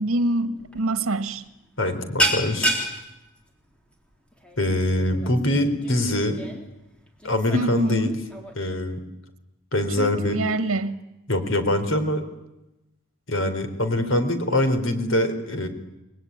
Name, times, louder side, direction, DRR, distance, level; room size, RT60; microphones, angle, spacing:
voice 1, 0.0-1.4 7.5-8.1 10.0-11.0, right 2 dB, 85° right, 10 dB, 1.6 m, -25 dB
sound 1, 0.6-0.8 1.1-1.4 1.7-8.6, right 1 dB, 5° left, 3.7 m, -30 dB
voice 2, 1.8-2.9 4.6-6.4 7.2-8.2 8.6-9.0 9.7-10.4 11.3-12.2 13.3-15.7, left 1 dB, 70° left, 8 dB, 4.1 m, -23 dB
29.0 x 21.5 x 9.6 m, 0.96 s
head